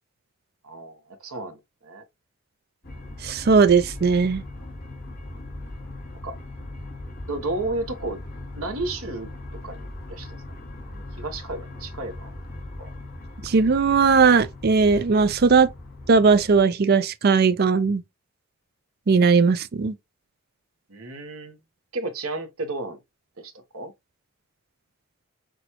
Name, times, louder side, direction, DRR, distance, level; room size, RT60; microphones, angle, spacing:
voice 1, 0.6-2.0 6.2-6.4 7.2-8.2 8.5-9.3 9.6-10.4 10.9-12.3 12.8-12.9 20.9-21.6 21.9-23.0 23.4-23.9, right 2 dB, 80° right, 1.0 m, -33 dB
sound 1, 2.8-16.6, left 2 dB, 45° left, 1.7 m, -39 dB
voice 2, 3.2-4.4 13.4-15.7 16.1-18.0 19.1-19.9, right 5 dB, 45° right, 0.4 m, -18 dB
6.0 x 2.3 x 2.8 m
head